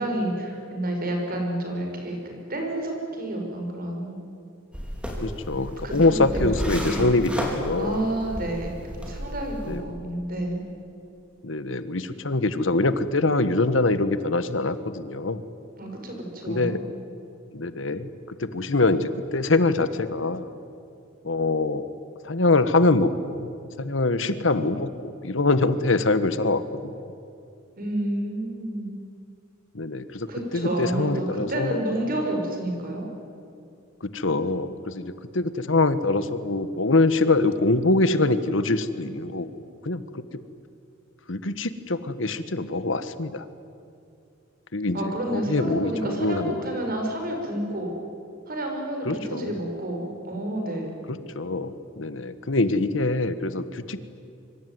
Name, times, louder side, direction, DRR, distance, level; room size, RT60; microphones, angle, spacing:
voice 1, 0.0-4.2 5.8-6.5 6.8-7.1 7.8-8.7 9.0-10.6 15.8-16.8 27.8-28.9 30.3-33.0 44.9-47.9 48.5-50.9, right 1 dB, 50° right, 2 dB, 6.6 m, -30 dB
sound 1, 4.7-9.8, equal, 5° right, 4.6 m, -33 dB
voice 2, 5.2-8.0 9.7-9.8 11.4-15.4 16.5-16.8 17.5-20.5 21.2-21.9 22.2-23.5 23.8-27.1 29.7-31.8 34.0-40.2 41.3-43.4 44.7-46.7 49.0-49.6 51.3-54.0, left 2 dB, 75° left, 12 dB, 1.4 m, -24 dB
25.5 x 24.5 x 9.6 m, 2.6 s
head